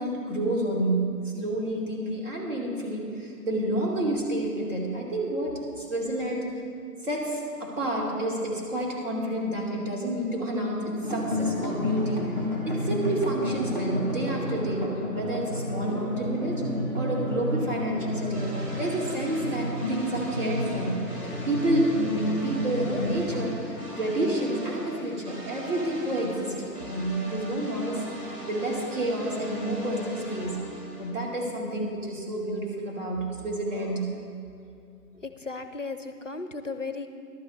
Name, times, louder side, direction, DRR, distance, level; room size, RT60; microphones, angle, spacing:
voice 1, 0.0-6.5 7.0-12.3 12.7-16.6 16.9-18.5 18.8-28.0 28.5-30.7 31.0-34.2, right 1 dB, 50° right, -3 dB, 2.9 m, -29 dB
sound 1, 11.0-23.6, left 1 dB, 25° right, 1.3 m, -31 dB
sound 2, 17.9-31.1, equal, 90° right, 3.4 m, -40 dB
voice 2, 35.1-37.1, left 4 dB, 50° left, 9 dB, 0.5 m, -35 dB
15.5 x 12.0 x 3.3 m, 2.4 s
hypercardioid pair, 180°, 48 cm